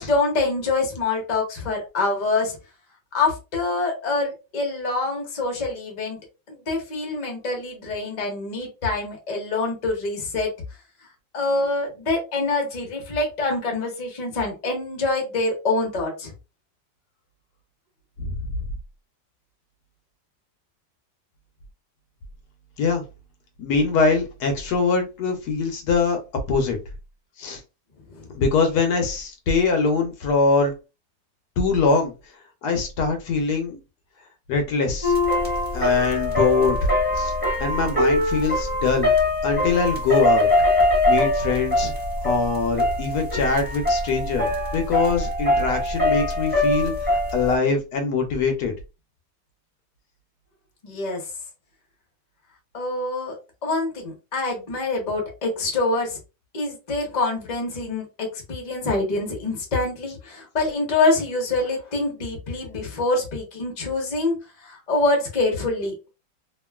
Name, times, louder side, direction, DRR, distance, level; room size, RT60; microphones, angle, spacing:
voice 1, 0.0-2.6 3.1-6.2 6.5-10.5 11.3-16.3 28.1-28.3 50.8-51.2 52.7-56.2 56.5-64.3 64.6-66.1, left 3 dB, 40° left, 1 dB, 0.6 m, -25 dB
voice 2, 23.6-26.2 26.5-26.8 27.4-27.6 28.3-30.7 31.6-32.1 32.6-33.8 34.5-35.1 35.7-36.9 37.2-37.3 37.6-39.1 39.4-40.5 41.1-41.9 42.2-44.5 44.7-48.7, left 4 dB, 70° left, 4 dB, 1.1 m, -23 dB
sound 1, 35.0-47.6, left 1 dB, 5° right, 1.0 m, -22 dB
2.9 x 2.5 x 2.3 m, 0.29 s
omnidirectional pair, 1.9 m